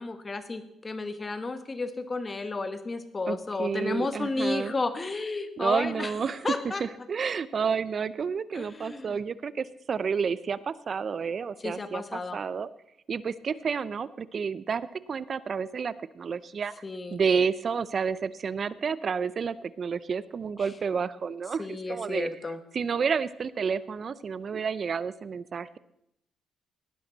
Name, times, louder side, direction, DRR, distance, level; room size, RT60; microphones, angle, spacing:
voice 1, 0.0-6.1 6.4-6.8 8.5-9.2 11.6-12.4 16.8-17.2 20.6-20.7 21.6-22.6, left 3 dB, 30° left, 10 dB, 1.4 m, -32 dB
voice 2, 3.3-4.7 5.6-6.5 6.8-12.7 13.1-16.7 17.1-22.3 22.7-25.8, right 6 dB, 45° right, 17 dB, 0.5 m, -30 dB
17.5 x 10.5 x 4.1 m, 0.80 s
cardioid pair, 90°, 0 cm